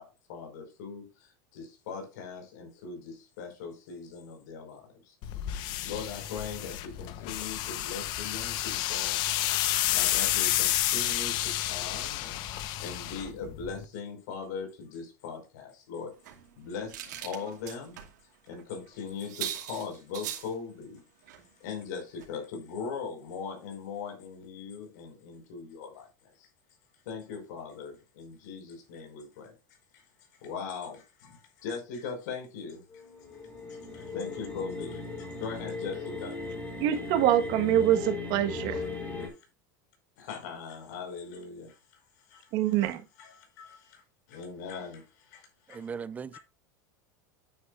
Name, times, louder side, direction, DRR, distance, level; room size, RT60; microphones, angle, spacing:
voice 1, 0.0-5.1 5.8-9.2 9.9-12.4 12.8-16.1 16.6-18.0 18.5-21.0 21.6-26.1 26.4-26.5 27.0-29.5 29.9-30.0 30.4-33.0 33.7-36.5 39.2-39.4 40.2-41.8 42.2-42.5 42.8-44.0 44.3-45.9 46.3-46.4, left 5 dB, 75° left, 5.1 m, -40 dB
sound 1, 5.2-13.8, left 14 dB, 50° left, 1.0 m, -30 dB
sound 2, 16.2-18.1 18.5-18.6 18.9-19.0 19.2-20.5 21.3-21.4 21.8-21.9 22.2-22.3, right 11 dB, 90° right, 2.6 m, -40 dB
sound 3, 32.9-39.3, left 3 dB, 15° left, 4.0 m, -37 dB
voice 2, 36.8-38.9 42.5-43.0, right 12 dB, 50° right, 1.5 m, -25 dB
voice 3, 45.7-46.4, right 6 dB, 15° right, 0.5 m, -38 dB
9.8 x 9.0 x 2.6 m
supercardioid pair, 145°, 9 cm